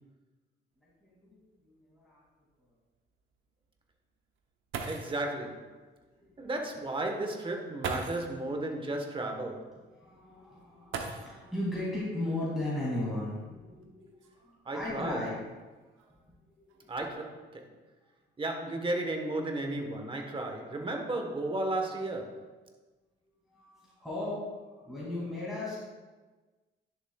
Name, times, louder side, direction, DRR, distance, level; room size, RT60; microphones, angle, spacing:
voice 1, 0.8-2.2 6.2-6.5 10.0-15.3 16.6-16.8 23.5-24.4 24.7-25.8, left 1 dB, ahead, -9 dB, 2.5 m, -37 dB
sound 1, 0.8-0.9 1.3-1.4 2.0-2.1 4.4-4.5 4.7-5.3 6.6-6.7 7.8-8.4 10.9-11.6 13.0-13.1 13.8-15.3 16.0-16.3 16.7-17.1, right 4 dB, 80° right, 0.9 m, -40 dB
voice 2, 4.8-5.8 6.4-9.8 14.6-15.3 16.9-17.7 18.4-22.6, right 2 dB, 25° right, 3 dB, 1.2 m, -34 dB
11.0 x 7.1 x 2.3 m, 1.3 s
cardioid pair, 90°, 20 cm